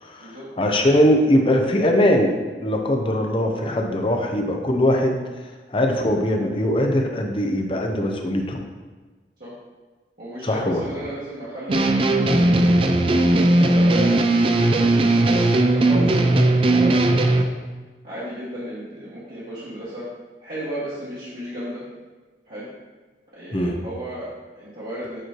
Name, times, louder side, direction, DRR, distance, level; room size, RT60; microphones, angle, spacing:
voice 1, 0.0-2.3 2.6-5.2 5.7-8.6 10.4-10.9 23.5-23.7, left 1 dB, 30° left, 3 dB, 0.7 m, -21 dB
voice 2, 10.2-13.0 13.4-14.2 14.7-16.5 16.8-17.5 18.0-20.0 20.4-21.8 22.5-22.6 23.3-25.2, equal, 55° right, -11 dB, 1.6 m, -34 dB
sound 1, 11.7-17.4, right 2 dB, 30° right, 0.4 m, -18 dB
9.0 x 3.2 x 4.4 m, 1.3 s
head